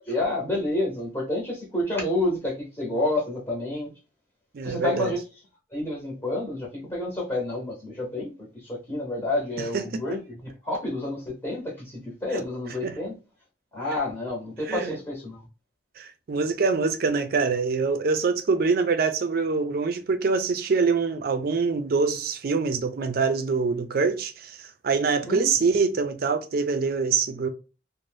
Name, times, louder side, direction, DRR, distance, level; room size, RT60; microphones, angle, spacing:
voice 1, 0.1-3.9 4.6-5.2 5.7-8.3 8.6-13.1 13.7-15.4 25.2-25.5, left 1 dB, 15° left, 0.8 m, -29 dB
voice 2, 4.5-5.1 9.7-10.0 12.8-13.0 14.7-14.9 16.0-27.5, right 4 dB, 55° right, 0.4 m, -25 dB
2.6 x 2.1 x 3.2 m
head